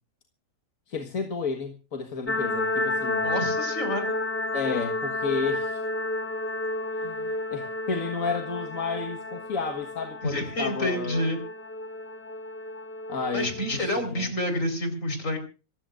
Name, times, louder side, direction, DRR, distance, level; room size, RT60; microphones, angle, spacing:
voice 1, 0.9-3.3 4.5-5.8 6.9-11.3 13.1-14.3, left 5 dB, 90° left, 2.0 m, -32 dB
sound 1, 2.3-14.1, left 2 dB, 10° left, 1.0 m, -31 dB
voice 2, 3.2-4.1 10.2-11.4 13.3-15.4, left 1 dB, 75° left, 4.8 m, -28 dB
26.0 x 16.0 x 2.5 m
omnidirectional pair, 1.4 m